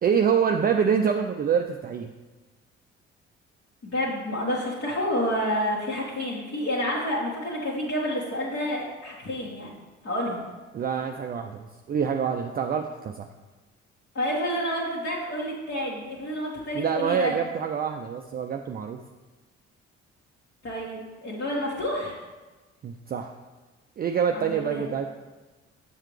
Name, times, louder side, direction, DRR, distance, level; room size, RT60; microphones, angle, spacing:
voice 1, 0.0-2.1 10.7-13.3 16.7-19.0 22.8-23.3 24.0-25.1, right 7 dB, 25° right, 4 dB, 0.4 m, -26 dB
voice 2, 3.8-9.7 10.0-10.4 14.1-17.4 20.6-22.2 24.3-24.8, equal, 40° left, -6 dB, 1.6 m, -29 dB
7.3 x 7.1 x 3.3 m, 1.2 s
figure-of-eight pair, 45°, 34 cm